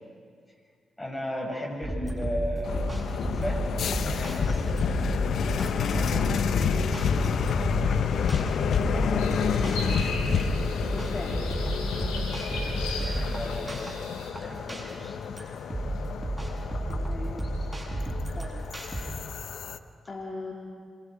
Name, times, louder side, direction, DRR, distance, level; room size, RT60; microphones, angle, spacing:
voice 1, 1.0-2.8 3.2-3.6 3.9-4.7 5.9-6.5 13.0-14.0 14.4-15.3, equal, 20° left, 1 dB, 6.8 m, -36 dB
sound 1, 1.8-19.0, right 1 dB, 20° right, 7.3 m, -32 dB
sound 2, 2.6-19.8, left 7 dB, 70° left, 0.8 m, -29 dB
sound 3, 9.2-14.3, left 3 dB, 85° left, 3.5 m, -38 dB
voice 2, 10.9-11.4 16.9-18.0 18.4-18.7 20.1-20.5, left 3 dB, 40° left, 0 dB, 2.6 m, -39 dB
27.0 x 21.0 x 5.1 m, 2.1 s
hypercardioid pair, 45°, 0 cm